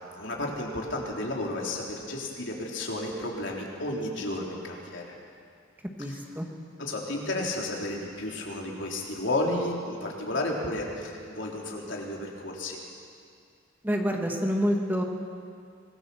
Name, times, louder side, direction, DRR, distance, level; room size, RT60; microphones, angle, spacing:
voice 1, 0.0-5.1 6.1-6.2 6.8-12.8, left 1 dB, 65° left, -1 dB, 3.7 m, -32 dB
voice 2, 6.0-6.5 13.8-15.0, equal, 10° right, 1 dB, 1.7 m, -27 dB
24.5 x 19.5 x 7.1 m, 2.3 s
head